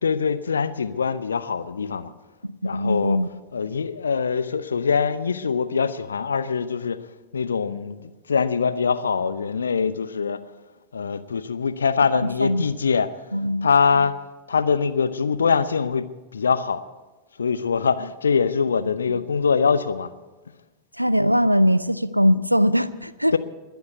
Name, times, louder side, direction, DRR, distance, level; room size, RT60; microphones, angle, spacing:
voice 1, 0.0-2.1 2.6-3.2 3.5-7.0 7.3-10.4 10.9-13.1 13.6-14.1 14.5-16.1 16.3-16.8 17.4-20.1 23.3-23.4, left 5 dB, 70° left, 14 dB, 0.7 m, -23 dB
voice 2, 2.6-3.3 12.1-12.7 13.3-14.0 18.8-19.2 21.0-23.3, equal, 90° right, 15 dB, 0.5 m, -21 dB
21.0 x 7.1 x 8.1 m, 1.2 s
figure-of-eight pair, 90°, 0 cm